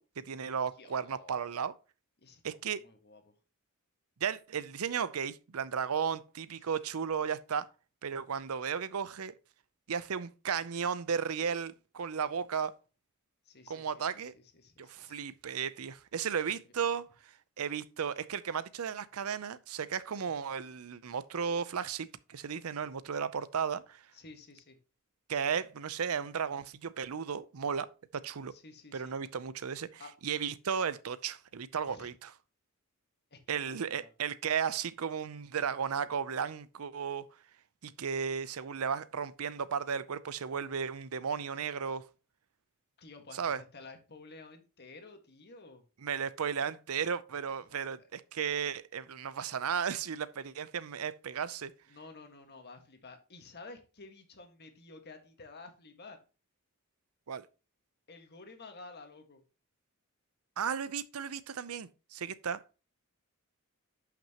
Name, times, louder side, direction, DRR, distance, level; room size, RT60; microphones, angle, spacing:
voice 1, 0.0-1.7 2.4-2.8 4.2-7.7 8.0-9.3 9.9-12.7 13.7-14.3 14.8-17.0 17.6-24.0 25.3-28.5 28.9-32.3 33.5-37.3 37.8-42.1 43.3-43.6 46.0-51.7 57.3-57.5 60.6-62.6, right 7 dB, 85° right, 0.6 m, -35 dB
voice 2, 0.8-1.6 2.2-3.3 6.6-6.7 13.5-15.3 16.5-16.9 24.1-24.8 28.5-29.1 30.0-30.1 31.9-32.1 33.3-34.1 43.0-45.8 47.7-48.1 51.9-56.2 58.1-59.4, left 3 dB, 50° left, 1.7 m, -52 dB
11.0 x 5.9 x 2.9 m
head